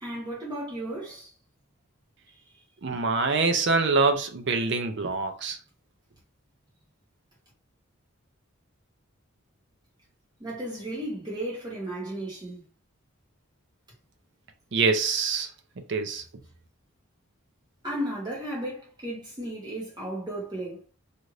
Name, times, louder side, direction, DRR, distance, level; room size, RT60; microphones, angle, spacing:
voice 1, 0.0-1.3 2.3-2.4 10.4-12.6 17.8-20.8, right 1 dB, 20° right, 1.2 m, -34 dB
voice 2, 2.8-5.6 14.7-15.5 15.9-16.2, right 4 dB, 55° right, 0.5 m, -25 dB
2.5 x 2.5 x 3.2 m
head